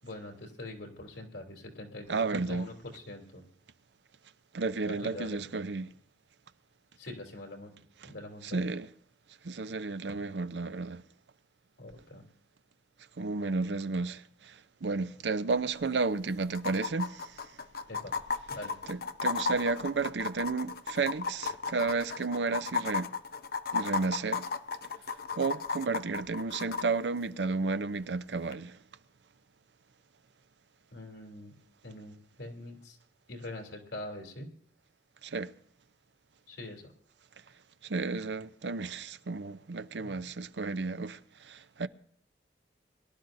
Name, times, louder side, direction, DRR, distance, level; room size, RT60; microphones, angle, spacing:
voice 1, 0.0-3.4 4.8-5.4 7.0-7.7 8.0-8.7 11.8-12.2 17.9-18.1 18.5-18.7 30.9-31.5 31.8-33.0 33.3-34.5 36.5-36.9, left 2 dB, 85° left, 3.2 m, -43 dB
voice 2, 2.1-2.7 4.5-5.9 8.0-8.1 8.4-8.9 9.4-11.0 13.2-17.6 18.9-23.1 23.7-24.5 25.4-28.8 35.2-35.5 37.8-41.9, right 4 dB, 80° right, 0.6 m, -32 dB
sound 1, 15.5-15.6 15.8-15.9 16.5-26.8 28.5-28.6, left 4 dB, 60° left, 0.7 m, -34 dB
22.5 x 12.0 x 2.6 m
head